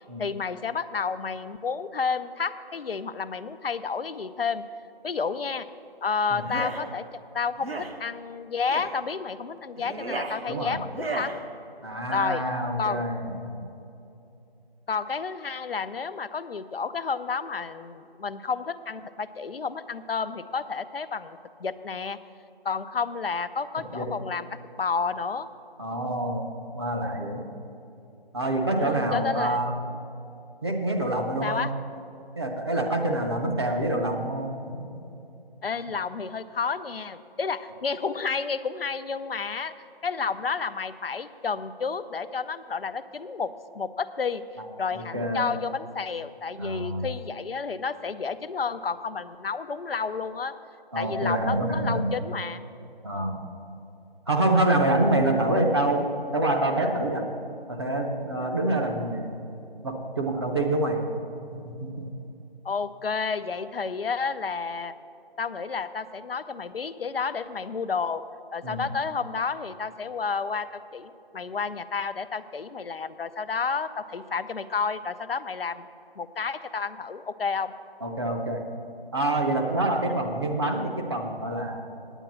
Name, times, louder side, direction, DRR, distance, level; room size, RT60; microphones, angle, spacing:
voice 1, 0.2-4.6 5.0-5.7 6.0-11.4 12.1-12.4 12.8-13.1 14.9-22.2 22.6-24.5 24.8-25.5 28.7-29.6 31.4-31.7 35.6-44.4 44.8-50.5 50.9-52.6 62.6-64.9 65.4-68.2 68.5-75.9 76.2-77.7, left 5 dB, 70° left, 11 dB, 0.6 m, -31 dB
sound 1, 6.4-6.8 7.6-7.9 8.7-8.9 9.8-10.4 10.9-11.3, right 3 dB, 75° right, 1.3 m, -33 dB
voice 2, 10.5-10.8 11.8-13.6 23.9-24.1 25.8-26.5 26.7-27.4 28.3-29.7 30.6-31.6 32.4-34.7 44.6-44.7 44.9-45.5 46.6-47.1 50.9-52.1 53.0-53.4 54.3-56.1 56.3-57.2 57.7-59.4 59.8-61.1 61.5-62.1 68.6-68.8 78.0-78.6 79.1-81.9, right 1 dB, 25° right, 1 dB, 0.7 m, -26 dB
9.1 x 8.7 x 7.4 m, 2.8 s
figure-of-eight pair, 160°, 30 cm